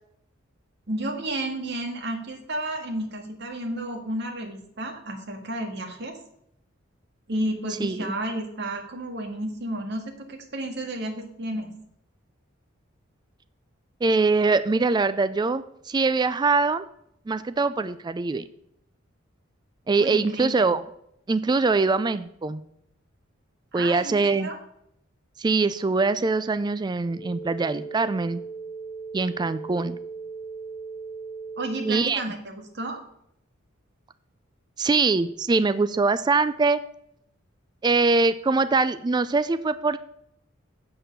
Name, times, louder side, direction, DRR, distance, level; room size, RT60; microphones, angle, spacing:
voice 1, 0.9-6.2 7.3-11.7 20.0-20.7 23.7-24.6 31.6-33.0, right 1 dB, 60° right, 3 dB, 1.8 m, -32 dB
voice 2, 7.8-8.1 14.0-16.8 17.3-18.4 19.9-20.8 21.3-22.6 23.7-24.5 25.4-28.4 29.1-30.0 31.9-32.2 34.8-36.8 37.8-40.0, right 3 dB, 20° right, 13 dB, 0.3 m, -23 dB
sound 1, 27.1-32.1, right 5 dB, 20° left, 0.7 m, -38 dB
7.6 x 6.8 x 6.7 m, 0.74 s
head